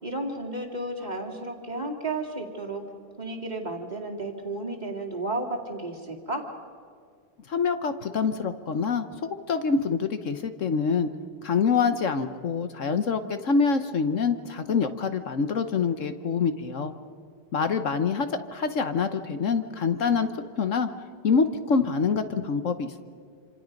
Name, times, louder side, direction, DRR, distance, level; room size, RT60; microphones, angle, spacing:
voice 1, 0.0-2.8 3.2-6.5, right 2 dB, 20° right, 1 dB, 2.3 m, -33 dB
voice 2, 7.5-11.1 11.4-16.9 17.5-20.3 20.6-20.9 21.2-23.0, left 5 dB, 50° left, 9 dB, 1.1 m, -26 dB
27.0 x 26.5 x 5.3 m, 2.2 s
omnidirectional pair, 2.0 m